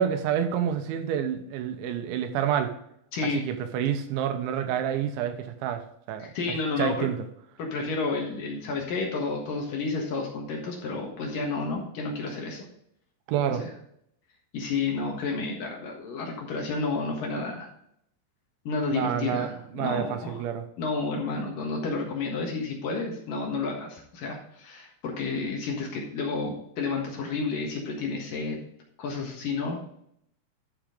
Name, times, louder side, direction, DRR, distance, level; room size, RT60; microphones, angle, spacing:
voice 1, 0.0-2.7 3.2-6.3 6.8-7.2 13.3-13.6 18.9-20.7, right 9 dB, 85° right, 7 dB, 3.3 m, -28 dB
voice 2, 3.1-3.4 6.2-7.1 7.6-12.7 13.5-13.7 14.5-17.7 18.7-20.5 20.8-28.6 29.0-29.8, left 4 dB, 60° left, 0 dB, 2.7 m, -31 dB
12.0 x 6.3 x 3.7 m, 0.72 s
omnidirectional pair, 5.2 m